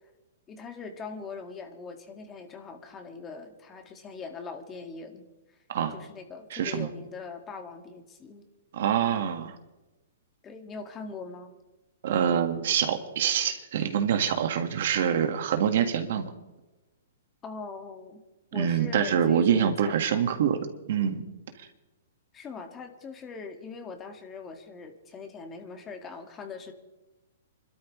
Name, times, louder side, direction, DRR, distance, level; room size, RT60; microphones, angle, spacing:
voice 1, 0.5-5.3 5.9-8.4 10.4-11.5 17.4-18.2 18.5-20.4 22.3-26.7, left 4 dB, 20° left, 5 dB, 2.0 m, -41 dB
voice 2, 6.5-6.9 8.7-9.5 12.0-16.2 18.5-20.6 20.9-21.2, right 8 dB, 65° right, 6 dB, 1.7 m, -25 dB
27.5 x 12.5 x 3.2 m, 1.0 s
hypercardioid pair, 135°, 0 cm